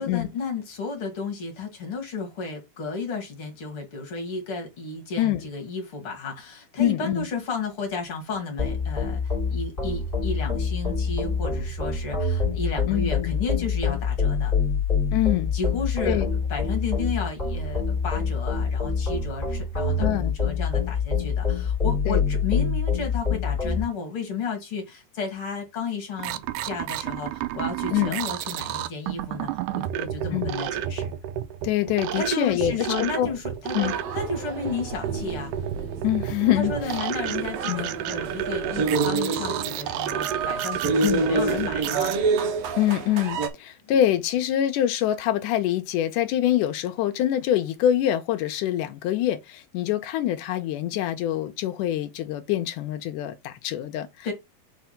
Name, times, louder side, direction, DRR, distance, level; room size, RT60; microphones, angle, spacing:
voice 1, 0.0-14.5 15.5-31.1 32.2-35.5 36.5-42.1 43.8-44.0 54.2-54.3, left 4 dB, 45° left, 2.0 m, -33 dB
voice 2, 5.2-5.5 6.8-7.3 12.9-13.3 15.1-15.5 16.1-16.3 20.0-20.3 22.1-22.2 27.9-28.2 30.3-30.5 31.6-32.7 33.0-33.3 33.7-33.9 36.0-37.0 37.7-37.9 41.0-41.2 42.8-54.3, left 12 dB, 80° left, 1.9 m, -25 dB
sound 1, 8.6-23.8, left 5 dB, 15° left, 2.9 m, -26 dB
sound 2, 26.2-42.2, right 11 dB, 85° right, 1.8 m, -31 dB
sound 3, 33.8-43.5, right 4 dB, 65° right, 1.8 m, -28 dB
5.1 x 4.7 x 5.6 m
omnidirectional pair, 4.3 m